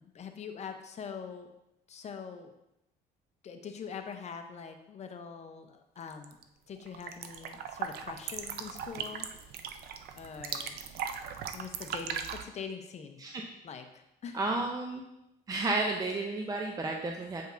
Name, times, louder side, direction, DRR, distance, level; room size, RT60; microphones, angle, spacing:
voice 1, 0.0-1.5 1.9-2.5 3.4-6.4 6.7-9.3 9.6-9.7 10.2-10.8 11.5-13.2 13.6-14.4, left 6 dB, 40° left, 6 dB, 0.7 m, -43 dB
sound 1, 6.1-6.4 6.8-12.4, right 7 dB, 65° right, 0.5 m, -39 dB
voice 2, 14.3-15.0 15.5-17.4, right 2 dB, 20° right, 1 dB, 0.6 m, -32 dB
7.8 x 5.2 x 2.6 m, 0.87 s
cardioid pair, 110°, 17 cm